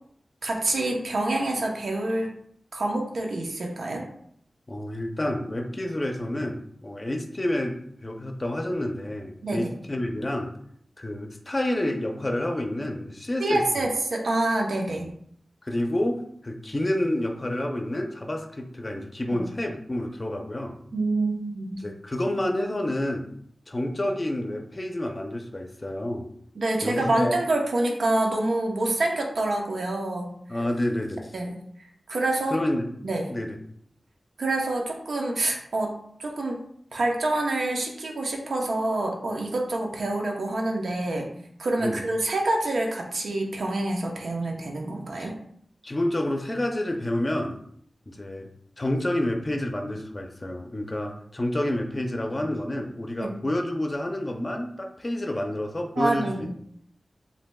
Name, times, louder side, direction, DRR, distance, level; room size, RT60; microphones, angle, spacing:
voice 1, 0.4-2.3 2.7-4.0 9.4-9.7 13.4-15.1 19.3-19.4 20.9-21.8 26.6-30.3 31.3-31.6 32.1-32.6 33.0-33.3 34.4-35.9 36.2-36.6 36.9-41.3 41.6-45.4 53.2-53.4 56.0-56.5, right 2 dB, 85° right, 0 dB, 0.8 m, -27 dB
voice 2, 4.7-10.5 11.0-13.9 15.6-20.8 21.8-23.3 23.7-26.3 26.8-27.3 30.5-31.3 32.5-32.9 33.3-33.6 41.8-42.0 45.1-45.3 45.8-47.6 48.1-48.5 48.8-56.5, left 1 dB, 30° left, 3 dB, 0.5 m, -29 dB
7.3 x 2.8 x 2.3 m, 0.67 s
wide cardioid pair, 105°, 0 cm